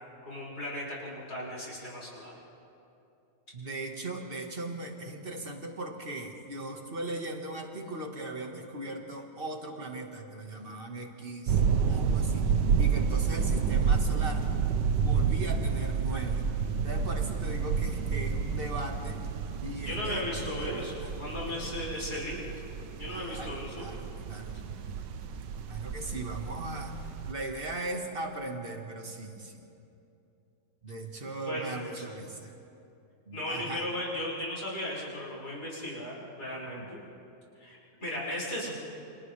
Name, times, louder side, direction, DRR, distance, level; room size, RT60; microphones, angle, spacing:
voice 1, 0.2-2.3 19.8-22.5 23.0-23.9 31.5-32.1 33.3-37.0 37.6-38.7, left 1 dB, 60° left, -6 dB, 6.3 m, -36 dB
voice 2, 3.5-11.6 11.9-14.5 14.9-16.4 16.8-19.3 19.6-21.1 21.6-21.8 23.1-24.6 25.7-27.0 27.3-29.7 30.8-32.6 33.3-33.9 36.7-36.9, right 2 dB, 35° right, 3 dB, 1.8 m, -39 dB
sound 1, 11.5-27.3, right 6 dB, 80° right, 1.5 m, -30 dB
29.5 x 28.0 x 3.4 m, 2.7 s
omnidirectional pair, 1.9 m